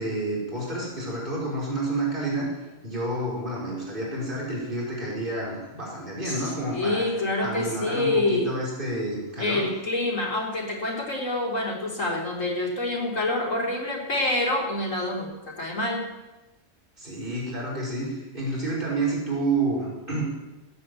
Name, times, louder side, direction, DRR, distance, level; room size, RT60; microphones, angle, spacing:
voice 1, 0.0-2.5 2.8-7.0 7.4-9.7 17.0-20.2, right 2 dB, 40° right, -5 dB, 5.3 m, -29 dB
voice 2, 6.2-8.5 9.4-16.0, left 2 dB, 80° left, -2 dB, 4.0 m, -27 dB
17.0 x 9.6 x 7.9 m, 1.1 s
omnidirectional pair, 1.3 m